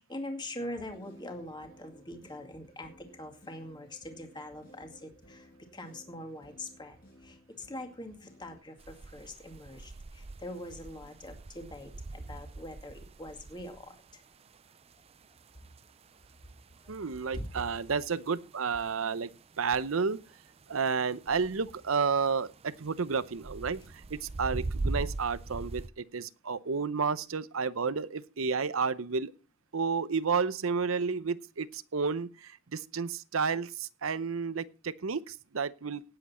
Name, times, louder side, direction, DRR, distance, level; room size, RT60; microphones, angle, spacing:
voice 1, 0.0-14.2 16.8-17.1 17.3-17.4, left 1 dB, 20° left, 4 dB, 2.2 m, -43 dB
sound 1, 0.8-8.6, equal, 45° left, 5.6 m, -57 dB
sound 2, 8.8-25.9, right 2 dB, 30° right, 0.5 m, -42 dB
voice 2, 16.9-19.3 19.6-20.2 20.7-23.8 24.1-29.3 29.7-36.0, right 5 dB, 85° right, 16 dB, 0.7 m, -31 dB
18.0 x 8.0 x 4.3 m, 0.35 s
head